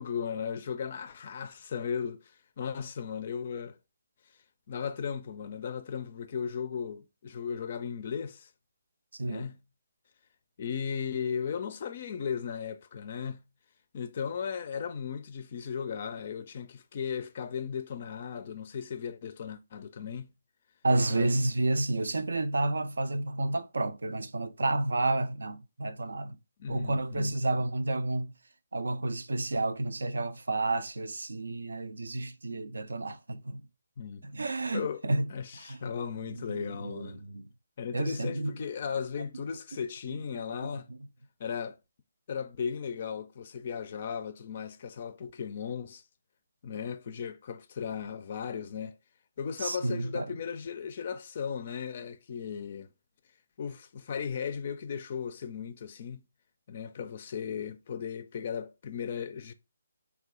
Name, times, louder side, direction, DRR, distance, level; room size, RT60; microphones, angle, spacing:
voice 1, 0.0-2.2 2.6-3.8 4.7-8.5 9.2-9.6 10.6-13.4 13.9-20.3 21.1-21.3 26.6-27.3 32.5-32.6 34.0-34.2 34.7-35.0 35.3-37.2 37.8-40.9 41.4-41.8 42.3-46.0 46.6-49.0 49.4-52.9 53.6-56.2 56.7-59.5, left 7 dB, 40° left, 0.4 m, -36 dB
voice 2, 9.1-9.5 20.8-26.4 26.7-28.3 28.7-33.6 34.2-35.9 36.3-37.5 37.9-38.6 40.1-41.0 49.6-50.4, right 2 dB, 65° right, 0.4 m, -31 dB
3.2 x 2.4 x 3.6 m
figure-of-eight pair, 140°, 0 cm